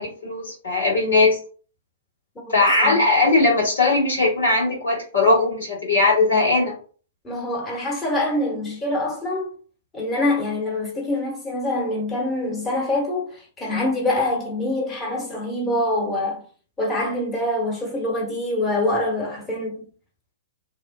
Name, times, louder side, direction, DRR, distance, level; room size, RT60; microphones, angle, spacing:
voice 1, 0.0-1.4 2.5-6.7, left 3 dB, 75° left, 1.5 m, -19 dB
voice 2, 2.4-3.0 7.2-9.5 9.9-16.4 16.8-19.9, left 1 dB, 20° left, 1.0 m, -25 dB
2.7 x 2.1 x 2.2 m
figure-of-eight pair, 105°, 0 cm